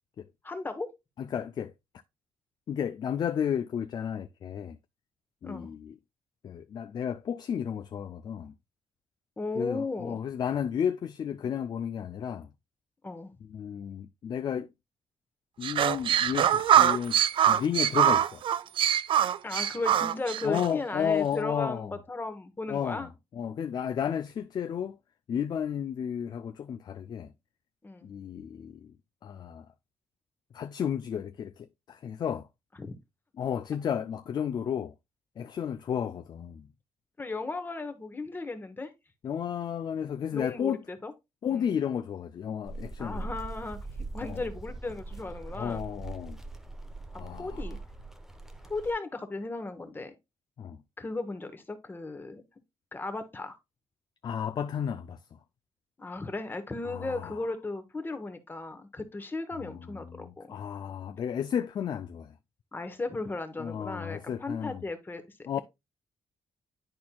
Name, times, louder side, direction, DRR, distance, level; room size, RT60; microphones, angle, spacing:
voice 1, 0.4-0.9 5.4-5.7 9.4-10.2 13.0-13.3 19.4-23.1 27.8-28.1 32.8-33.0 37.2-38.9 40.3-41.1 41.5-41.7 43.0-43.8 44.1-45.8 47.3-47.8 48.6-50.1 51.0-52.4 52.9-53.6 56.0-60.6 62.7-65.2, left 3 dB, 20° left, 1.0 m, -36 dB
voice 2, 1.2-1.7 2.7-4.8 5.4-5.9 6.4-8.5 9.6-12.5 13.5-14.7 15.6-18.4 20.4-21.9 22.7-25.0 25.3-27.3 28.0-28.9 29.2-29.7 30.5-32.5 33.4-34.9 35.4-36.7 39.2-40.8 41.4-43.3 44.2-44.4 45.5-46.4 47.1-47.7 50.6-50.8 54.2-55.4 56.9-57.5 59.5-62.3 63.6-64.8 65.5-65.6, left 8 dB, 45° left, 0.3 m, -33 dB
sound 1, 15.6-20.7, right 10 dB, 55° right, 0.4 m, -24 dB
sound 2, 42.6-48.9, right 3 dB, 5° right, 0.6 m, -41 dB
10.5 x 4.3 x 2.2 m
cardioid pair, 120°, 10 cm